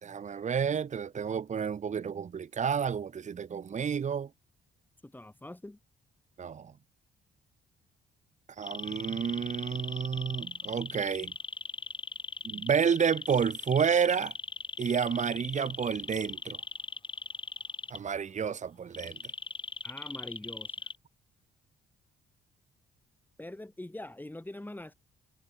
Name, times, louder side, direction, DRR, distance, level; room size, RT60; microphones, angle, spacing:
voice 1, 0.0-4.3 6.4-6.7 8.6-11.3 12.4-14.3 14.8-16.6 17.9-19.2, right 7 dB, 35° right, 0.8 m, -30 dB
voice 2, 5.0-5.8 19.8-20.9 23.4-24.9, left 1 dB, 10° left, 4.6 m, -43 dB
sound 1, 8.6-18.0 18.9-21.0, left 4 dB, 25° left, 2.9 m, -39 dB
cardioid pair, 90°, 20 cm